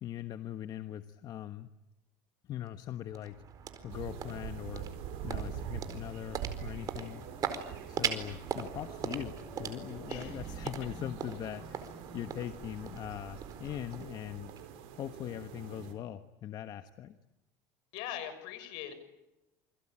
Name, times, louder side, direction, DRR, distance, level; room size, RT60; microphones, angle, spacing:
voice 1, 0.0-1.7 2.5-3.4 3.8-4.9 5.2-7.2 7.9-14.5 14.9-17.1, left 11 dB, 50° left, 9 dB, 1.3 m, -41 dB
sound 1, 2.7-15.1, right 7 dB, 40° right, 4.4 m, -41 dB
sound 2, 3.9-15.9, right 9 dB, 75° right, 5.8 m, -45 dB
sound 3, 5.1-12.4, left 2 dB, 15° left, 4.1 m, -54 dB
voice 2, 10.1-10.7 17.9-18.9, left 11 dB, 75° left, 11 dB, 6.3 m, -42 dB
28.0 x 23.0 x 9.0 m, 0.96 s
supercardioid pair, 115°, 9 cm